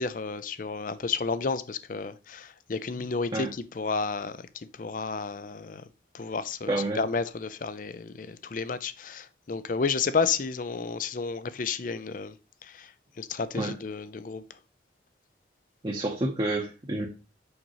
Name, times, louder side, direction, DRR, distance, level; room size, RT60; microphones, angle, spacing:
voice 1, 0.0-4.5 4.8-5.8 6.1-12.3 12.6-12.9 13.2-14.4, left 4 dB, 45° left, 0.5 m, -31 dB
voice 2, 6.7-7.0 13.5-13.7 15.8-17.1, right 2 dB, 30° right, 0.8 m, -29 dB
6.4 x 6.0 x 3.0 m
head